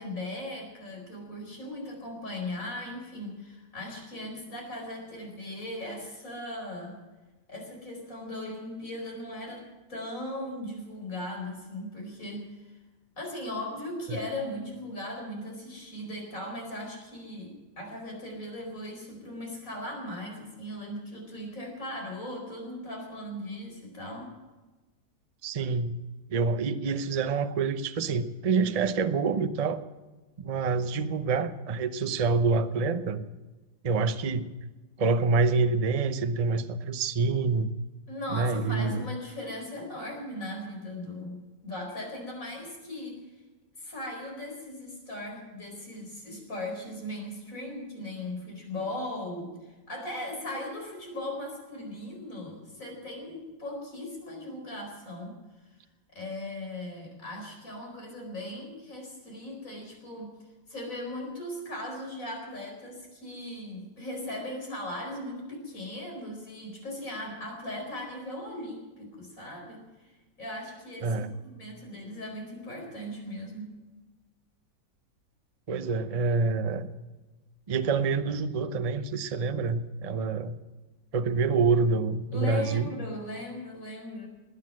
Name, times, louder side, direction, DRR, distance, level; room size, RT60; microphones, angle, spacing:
voice 1, 0.0-7.0 7.5-12.7 13.2-24.3 38.1-43.2 43.8-55.4 56.1-73.8 82.3-84.3, left 1 dB, 45° left, 1 dB, 5.0 m, -38 dB
voice 2, 25.4-26.0 26.3-29.8 30.4-33.3 33.8-34.5 35.0-37.7 38.3-39.0 71.0-71.3 75.7-76.9 77.7-80.6 81.1-82.9, right 4 dB, 70° right, 10 dB, 0.3 m, -27 dB
20.0 x 9.6 x 7.6 m, 1.2 s
omnidirectional pair, 2.0 m